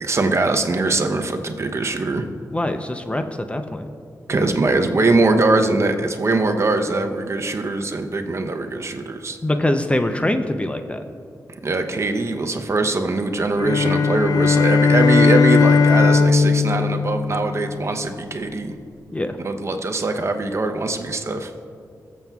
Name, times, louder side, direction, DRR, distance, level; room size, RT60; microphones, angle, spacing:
voice 1, 0.0-2.2 4.3-9.4 11.6-18.7 19.4-21.5, right 3 dB, 45° right, 6 dB, 0.7 m, -22 dB
voice 2, 2.5-3.9 9.4-11.0 19.1-19.4, left 1 dB, 20° left, 7 dB, 0.5 m, -23 dB
sound 1, 13.6-18.0, left 5 dB, 70° left, 0.4 m, -17 dB
21.0 x 7.3 x 2.3 m, 2.4 s
cardioid pair, 65°, 7 cm